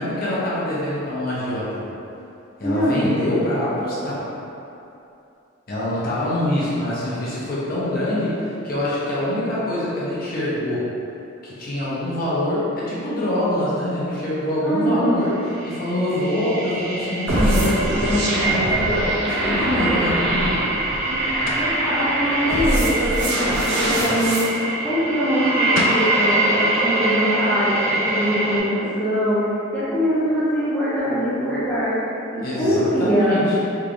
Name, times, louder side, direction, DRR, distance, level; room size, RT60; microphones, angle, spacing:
voice 1, 0.0-1.8 2.6-4.2 5.7-10.9 11.4-15.3 15.6-20.3 32.4-33.4, left 1 dB, 50° left, -8 dB, 0.8 m, -24 dB
voice 2, 2.6-3.1 14.6-15.3 21.1-21.2 21.5-24.5 24.8-32.0 32.3-33.4, equal, 10° left, -12 dB, 0.7 m, -23 dB
sound 1, 15.4-28.6, right 2 dB, 40° right, 1.1 m, -24 dB
sound 2, 17.3-24.5, right 1 dB, 60° right, 0.6 m, -24 dB
sound 3, 21.4-21.8 25.4-25.5 25.7-26.1, left 2 dB, 85° left, 0.4 m, -26 dB
3.6 x 3.1 x 2.6 m, 2.7 s
head